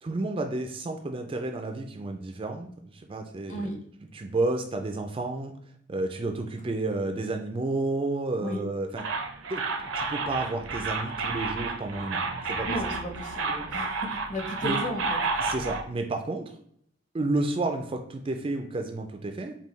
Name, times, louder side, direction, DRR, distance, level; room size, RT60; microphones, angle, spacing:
voice 1, 0.0-3.7 4.1-5.5 5.9-9.0 9.5-12.2 12.5-12.8 14.6-14.8 15.4-16.6 17.1-19.6, right 2 dB, 25° right, 4 dB, 0.3 m, -31 dB
sound 1, 9.0-15.8, right 3 dB, 80° right, 0.6 m, -31 dB
voice 2, 12.6-15.5, left 1 dB, 40° left, 1 dB, 0.9 m, -35 dB
5.4 x 2.2 x 3.1 m, 0.65 s
head